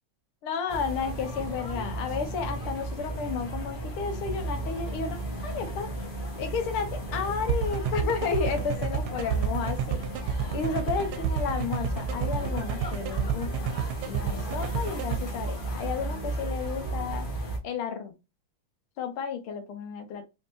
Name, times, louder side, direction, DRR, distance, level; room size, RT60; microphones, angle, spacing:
voice 1, 0.4-5.9 6.4-10.0 10.5-13.8 14.1-17.3 17.6-18.1 19.0-20.2, left 6 dB, 85° left, 1.8 m, -32 dB
sound 1, 0.7-17.6, right 1 dB, 30° left, 1.1 m, -34 dB
sound 2, 7.5-15.2, right 8 dB, 85° right, 1.5 m, -29 dB
4.1 x 3.5 x 2.6 m
omnidirectional pair, 2.3 m